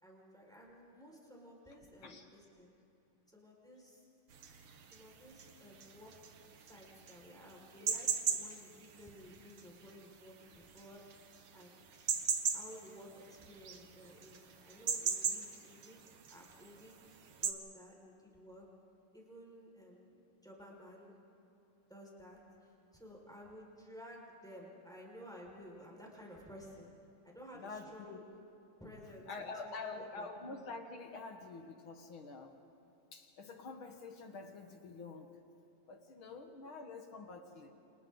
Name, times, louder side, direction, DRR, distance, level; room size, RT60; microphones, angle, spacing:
voice 1, 0.0-2.7 3.3-4.0 4.9-6.1 6.7-11.0 11.5-11.9 12.5-16.0 16.3-17.0 17.4-18.6 19.1-21.2 21.9-26.9 27.2-28.2 28.8-30.3, equal, ahead, -2 dB, 4.7 m, -54 dB
sound 1, 4.3-17.5, right 7 dB, 60° right, 1.5 m, -39 dB
voice 2, 27.5-28.2 29.3-32.6 33.1-35.4 35.9-37.7, left 3 dB, 55° left, 4 dB, 1.5 m, -47 dB
29.5 x 28.5 x 3.9 m, 2.9 s
omnidirectional pair, 4.0 m